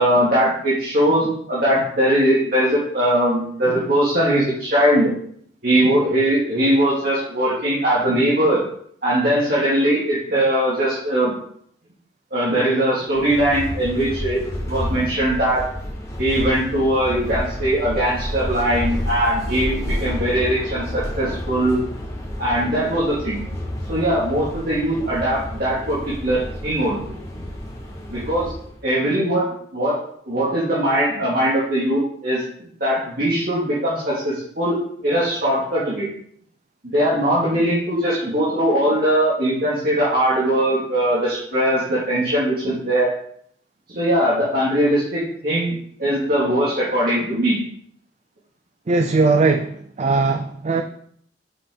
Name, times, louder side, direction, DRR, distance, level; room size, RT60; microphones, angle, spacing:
voice 1, 0.0-5.1 5.6-8.6 9.0-11.4 12.3-14.4 14.7-15.7 16.2-21.8 22.4-23.4 23.9-27.2 28.1-28.5 28.8-30.0 30.3-32.4 32.8-34.8 35.0-36.1 36.8-43.1 43.9-47.6, right 1 dB, 55° right, -9 dB, 2.4 m, -20 dB
sound 1, 13.1-28.8, equal, 15° left, 1.5 m, -30 dB
voice 2, 48.9-50.8, right 3 dB, 40° right, 7 dB, 0.4 m, -19 dB
6.8 x 6.4 x 4.0 m, 0.65 s
head